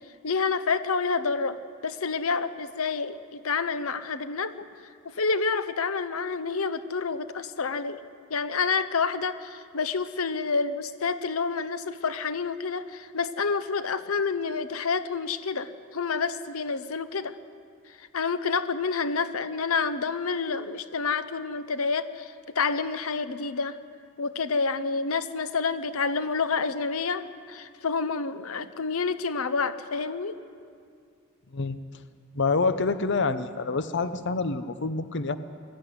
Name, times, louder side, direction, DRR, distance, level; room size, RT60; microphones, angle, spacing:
voice 1, 0.2-1.6 1.8-4.7 5.0-8.0 8.3-17.3 18.0-23.8 24.2-30.4, left 5 dB, 85° left, 12 dB, 0.8 m, -28 dB
voice 2, 32.4-35.4, left 4 dB, 55° left, 11 dB, 0.8 m, -27 dB
22.0 x 14.0 x 9.7 m, 2.3 s
head